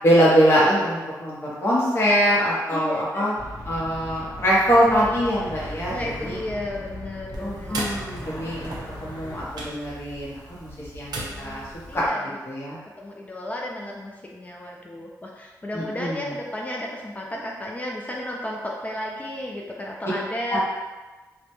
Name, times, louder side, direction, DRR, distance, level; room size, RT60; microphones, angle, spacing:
voice 1, 0.0-3.3 3.6-6.4 7.4-8.7 9.0-11.6 11.9-12.0 12.5-12.8 15.7-16.3 20.5-20.6, equal, 35° left, -7 dB, 0.7 m, -23 dB
voice 2, 2.7-3.3 5.9-8.1 11.3-12.4 12.7-20.6, left 1 dB, 20° left, -2 dB, 0.3 m, -33 dB
sound 1, 3.4-9.4, left 1 dB, 85° left, 0.8 m, -38 dB
sound 2, 7.3-12.1, right 2 dB, 80° right, 0.5 m, -37 dB
2.1 x 2.0 x 2.9 m, 1.2 s
wide cardioid pair, 95°, 7 cm